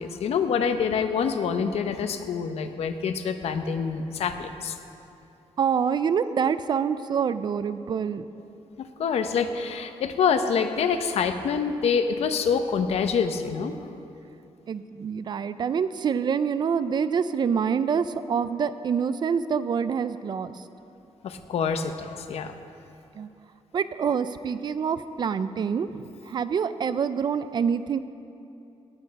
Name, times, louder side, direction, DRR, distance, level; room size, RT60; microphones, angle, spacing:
voice 1, 0.0-4.8 8.8-13.7 21.2-22.5, left 6 dB, 75° left, 8 dB, 0.8 m, -26 dB
voice 2, 5.6-8.3 14.7-20.6 23.2-23.3 23.7-28.0, right 7 dB, 45° right, 13 dB, 0.4 m, -26 dB
17.5 x 9.0 x 5.3 m, 2.7 s
wide cardioid pair, 175°, 11 cm